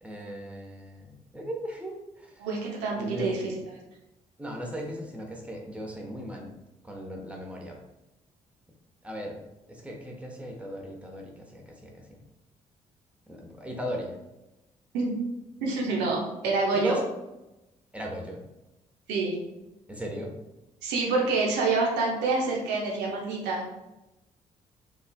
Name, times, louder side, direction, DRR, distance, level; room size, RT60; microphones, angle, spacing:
voice 1, 0.0-2.4 3.0-3.3 4.4-6.5 6.8-7.8 9.0-9.4 9.7-12.2 13.3-14.2 16.7-17.0 17.9-18.4 19.9-20.3, equal, 5° right, 0 dB, 1.1 m, -37 dB
voice 2, 2.4-3.4 14.9-15.1 15.6-17.0 19.1-19.3 20.8-23.6, right 3 dB, 70° right, -2 dB, 0.9 m, -27 dB
5.2 x 3.3 x 2.2 m, 0.96 s
hypercardioid pair, 45°, 18 cm